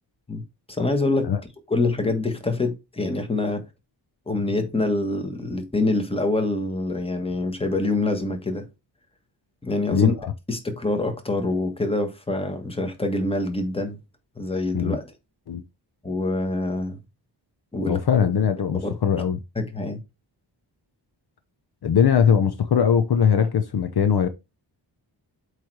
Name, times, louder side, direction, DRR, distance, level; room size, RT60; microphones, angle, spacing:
voice 1, 0.7-1.3 1.7-3.6 4.3-8.6 9.6-10.1 10.5-14.0 14.4-15.1 16.0-17.0 17.7-18.0 18.8-18.9 19.5-20.0, left 2 dB, 10° left, 1.3 m, -25 dB
voice 2, 9.9-10.3 14.7-15.0 15.5-15.6 17.9-19.4 21.8-24.3, left 7 dB, 55° left, 0.7 m, -20 dB
8.2 x 3.3 x 4.6 m
wide cardioid pair, 160°, 45 cm